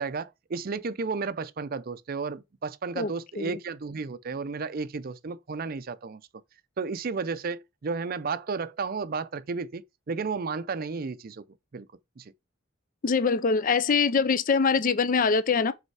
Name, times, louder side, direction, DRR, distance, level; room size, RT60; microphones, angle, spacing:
voice 1, 0.0-6.2 6.8-11.4 11.7-11.9 12.2-12.3, right 4 dB, 45° right, 0.5 m, -33 dB
voice 2, 13.0-15.7, left 5 dB, 40° left, 0.5 m, -23 dB
5.3 x 4.2 x 4.7 m
head